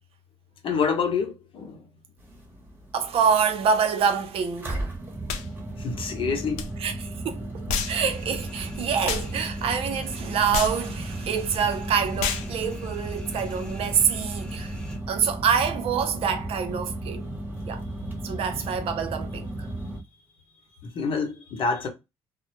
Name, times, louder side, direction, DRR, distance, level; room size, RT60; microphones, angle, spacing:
voice 1, 0.6-1.8 5.8-6.6 20.8-21.9, left 5 dB, 55° left, 0.8 m, -27 dB
sound 1, 2.2-20.0, right 1 dB, 20° right, 0.9 m, -35 dB
voice 2, 2.9-4.9 6.8-6.9 7.2-14.7 15.1-17.3 17.6-17.8 18.2-19.5, right 7 dB, 60° right, 0.6 m, -26 dB
sound 2, 5.3-5.5 6.6-6.7 7.7-8.0 9.1-9.3 10.5-10.8 12.2-12.5, left 5 dB, 85° left, 0.4 m, -28 dB
sound 3, 7.7-15.0, equal, 10° left, 0.8 m, -44 dB
2.1 x 2.0 x 3.0 m
supercardioid pair, 80°, 11 cm